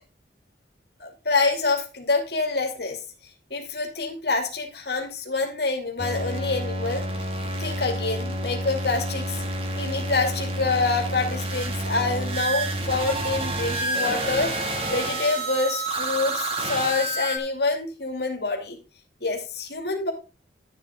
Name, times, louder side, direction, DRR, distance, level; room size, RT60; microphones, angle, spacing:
voice 1, 1.0-3.0 3.5-7.1 7.6-9.4 9.8-14.5 14.9-18.8 19.2-20.1, left 3 dB, 65° left, 2 dB, 2.7 m, -26 dB
sound 1, 6.0-17.4, right 1 dB, 30° right, 2.2 m, -29 dB
12.0 x 8.0 x 3.7 m, 0.31 s
head